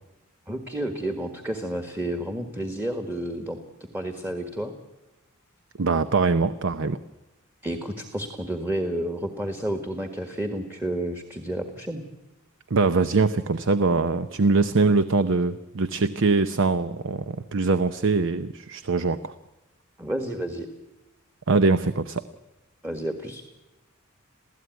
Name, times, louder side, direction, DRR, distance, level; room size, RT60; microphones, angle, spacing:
voice 1, 0.5-3.6 3.9-4.7 7.6-12.0 20.0-20.7 22.8-23.5, right 1 dB, 10° right, 6 dB, 1.6 m, -30 dB
voice 2, 5.8-7.0 12.7-19.3 21.5-22.2, right 3 dB, 60° right, 12 dB, 0.8 m, -22 dB
27.5 x 16.5 x 9.3 m, 0.99 s
head